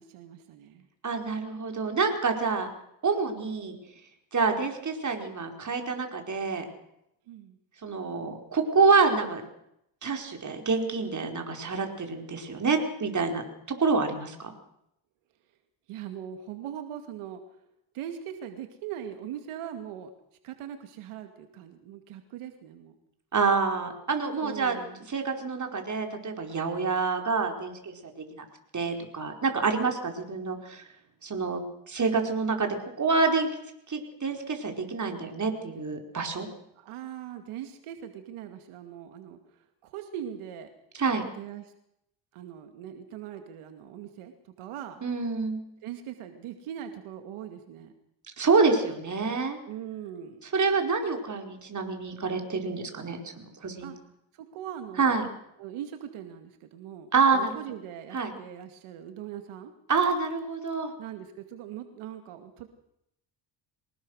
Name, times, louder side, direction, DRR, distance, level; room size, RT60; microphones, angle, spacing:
voice 1, 0.0-0.9 7.3-7.6 15.9-17.4 17.9-20.1 20.4-22.9 24.4-25.1 29.7-30.0 36.7-39.4 39.8-40.7 41.4-41.7 42.3-45.0 45.8-47.9 49.7-50.4 53.8-54.0 54.4-55.1 55.6-59.7 61.0-62.7, right 10 dB, 85° right, 7 dB, 2.5 m, -41 dB
voice 2, 1.0-2.7 3.0-3.8 4.3-6.6 7.8-9.4 10.0-13.4 13.8-14.5 23.3-24.8 25.1-28.4 28.7-30.8 31.2-31.6 31.9-32.7 33.0-33.5 33.9-36.5 41.0-41.2 45.0-45.6 48.4-49.6 50.5-53.9 55.0-55.2 57.1-57.5 58.1-58.3 59.9-60.9, right 4 dB, 35° right, 4 dB, 4.7 m, -27 dB
24.0 x 19.5 x 6.5 m, 0.78 s
cardioid pair, 95°, 49 cm